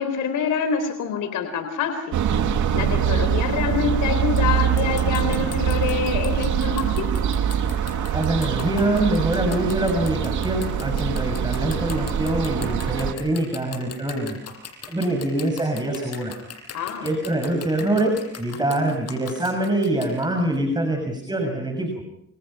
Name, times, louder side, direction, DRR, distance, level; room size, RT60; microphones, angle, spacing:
voice 1, 0.0-2.2 2.5-7.1 16.7-17.1, left 7 dB, 85° left, 7 dB, 4.2 m, -26 dB
sound 1, 2.1-13.1, right 8 dB, 75° right, 2.5 m, -24 dB
sound 2, 4.4-4.5 4.8-20.6, left 7 dB, 55° left, 7.7 m, -39 dB
voice 2, 8.1-14.4 14.9-16.3 17.0-21.9, right 1 dB, 15° right, 4 dB, 6.6 m, -24 dB
29.0 x 28.0 x 5.7 m, 0.73 s
cardioid pair, 90°, 30 cm